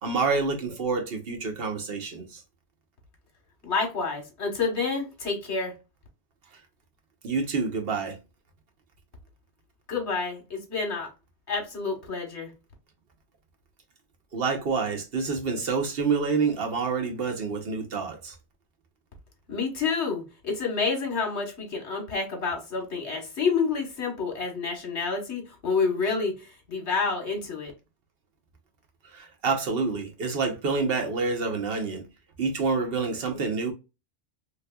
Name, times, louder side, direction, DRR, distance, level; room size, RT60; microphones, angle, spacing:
voice 1, 0.0-2.4 7.2-8.2 14.3-18.4 29.0-32.0 32.4-33.7, right 4 dB, 60° right, 1.1 m, -27 dB
voice 2, 3.6-5.7 9.9-11.1 11.5-12.5 19.5-26.4 26.7-27.7, left 4 dB, 85° left, 1.6 m, -28 dB
3.3 x 3.1 x 2.2 m
omnidirectional pair, 1.1 m